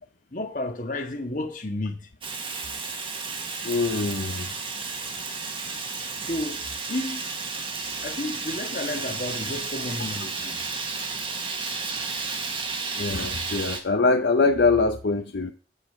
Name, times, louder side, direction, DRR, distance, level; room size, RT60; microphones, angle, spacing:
voice 1, 0.3-2.1 6.3-6.6 6.9-7.3 8.0-10.6, left 1 dB, 45° left, 1.5 m, -31 dB
Fire, 2.2-13.8, right 4 dB, 30° right, 1.2 m, -32 dB
voice 2, 3.6-4.5 13.0-15.5, left 3 dB, 70° left, 0.7 m, -23 dB
8.6 x 5.1 x 7.5 m
head